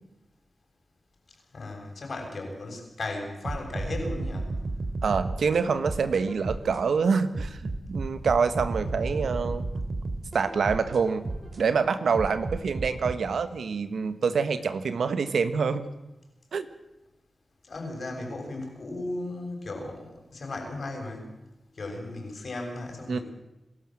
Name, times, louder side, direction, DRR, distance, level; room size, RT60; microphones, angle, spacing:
voice 1, 1.5-4.5 8.8-9.5 17.6-21.3 21.8-23.2, left 2 dB, 70° left, 2 dB, 7.0 m, -36 dB
sound 1, 3.4-6.8 7.3-11.6 12.1-13.1, right 2 dB, 50° right, 3.3 m, -33 dB
voice 2, 5.0-9.7 10.3-11.2 11.6-15.9 16.5-16.7 23.1-23.2, right 5 dB, 85° right, 11 dB, 1.3 m, -26 dB
27.5 x 13.0 x 7.6 m, 0.96 s
cardioid pair, 40°, 0 cm